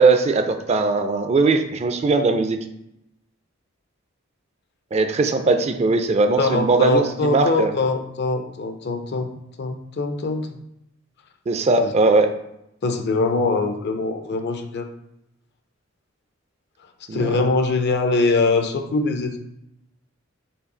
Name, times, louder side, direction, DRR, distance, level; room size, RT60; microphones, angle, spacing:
voice 1, 0.0-2.6 4.9-7.7 11.5-12.3 17.1-17.4, right 3 dB, 30° right, 7 dB, 0.3 m, -19 dB
voice 2, 6.4-9.3 9.6-10.6 11.8-11.9 12.8-14.9 17.1-19.4, left 3 dB, 55° left, 6 dB, 0.5 m, -22 dB
5.6 x 2.3 x 3.8 m, 0.82 s
head